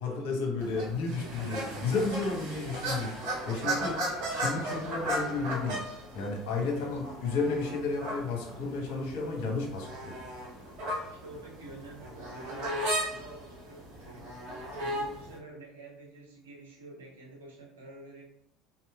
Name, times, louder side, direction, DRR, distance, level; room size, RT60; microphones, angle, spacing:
voice 1, 0.0-3.9 4.3-5.8 6.1-10.2, left 4 dB, 65° left, 0 dB, 0.9 m, -32 dB
sound 1, 0.6-15.4, right 1 dB, 60° right, 1.1 m, -36 dB
voice 2, 1.2-2.0 2.5-2.9 3.5-4.2 6.7-7.3 11.1-18.2, right 2 dB, 80° right, -2 dB, 0.9 m, -48 dB
3.7 x 2.9 x 2.2 m, 0.73 s
hypercardioid pair, 70°, 0 cm